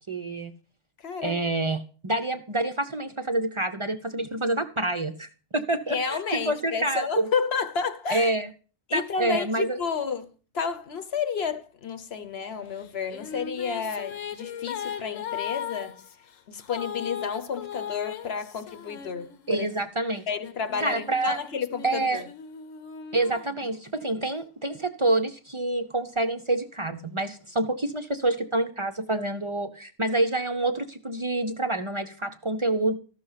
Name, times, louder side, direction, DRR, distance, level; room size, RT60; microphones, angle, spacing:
voice 1, 0.1-0.5 1.2-7.3 8.1-8.5 8.9-9.8 19.5-20.2 20.8-21.4 21.8-22.2 23.1-32.9, right 2 dB, 35° right, 0.5 m, -27 dB
voice 2, 1.0-1.4 5.9-8.3 8.9-10.3 10.5-16.0 16.5-19.7 20.3-22.2, left 6 dB, 55° left, 1.0 m, -31 dB
Female singing, 12.8-19.7 20.4-24.1, left 8 dB, 75° left, 1.2 m, -38 dB
13.5 x 6.3 x 5.6 m
omnidirectional pair, 1.4 m